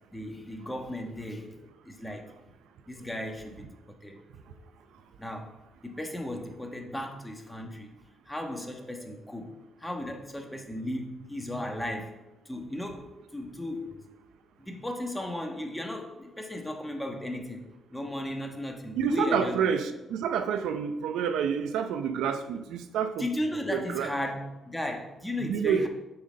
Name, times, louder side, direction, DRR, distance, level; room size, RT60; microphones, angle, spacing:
voice 1, 0.1-1.6 1.8-2.3 2.9-3.7 4.0-4.2 4.5-4.6 5.2-5.5 5.8-7.9 8.3-12.2 12.4-13.0 13.3-14.0 14.6-17.6 17.9-19.5 23.2-25.9, left 1 dB, 10° left, 3 dB, 1.2 m, -35 dB
voice 2, 19.0-23.3 23.7-24.1 25.4-25.9, right 7 dB, 85° right, 9 dB, 0.5 m, -28 dB
7.1 x 4.0 x 6.3 m, 0.99 s
cardioid pair, 90°, 0 cm